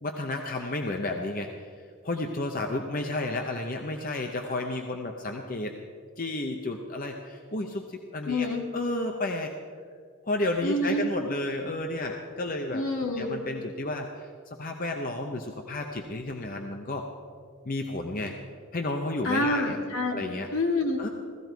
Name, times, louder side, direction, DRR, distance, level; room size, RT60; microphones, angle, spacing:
voice 1, 0.0-1.7 2.0-5.7 6.2-7.8 8.1-8.5 8.7-9.5 10.2-12.8 13.2-14.3 14.6-17.1 17.6-18.4 18.7-19.8 20.1-20.5 21.0-21.1, left 2 dB, 40° left, 3 dB, 0.7 m, -32 dB
voice 2, 8.3-8.6 10.6-11.1 12.7-13.4 19.2-21.0, left 1 dB, 70° left, 2 dB, 1.8 m, -27 dB
16.5 x 14.0 x 4.6 m, 2.2 s
head